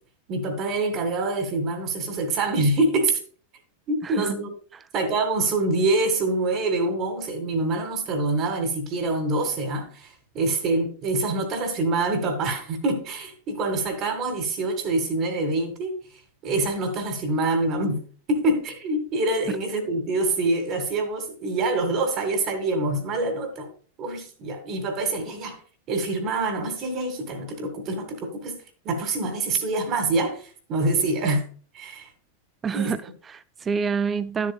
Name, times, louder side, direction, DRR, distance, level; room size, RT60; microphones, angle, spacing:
voice 1, 0.3-3.2 3.9-4.5 4.9-16.0 16.4-18.0 18.3-23.7 24.0-25.6 25.9-28.6 28.9-31.5 31.7-32.1 32.7-32.9, right 2 dB, 35° right, 1.8 m, -25 dB
voice 2, 4.0-4.4 4.7-4.8 32.6-34.5, right 5 dB, 20° right, 0.5 m, -28 dB
12.0 x 7.4 x 2.3 m
figure-of-eight pair, 90°, 0 cm